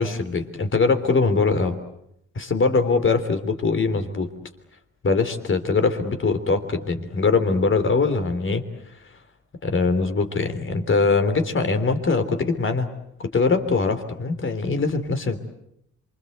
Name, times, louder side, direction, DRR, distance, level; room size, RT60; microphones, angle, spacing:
voice 1, 0.0-1.8 2.4-4.3 5.0-8.6 9.6-12.9 13.3-15.4, left 4 dB, 40° left, 8 dB, 3.5 m, -22 dB
26.5 x 25.5 x 8.1 m, 0.77 s
cardioid pair, 90°, 30 cm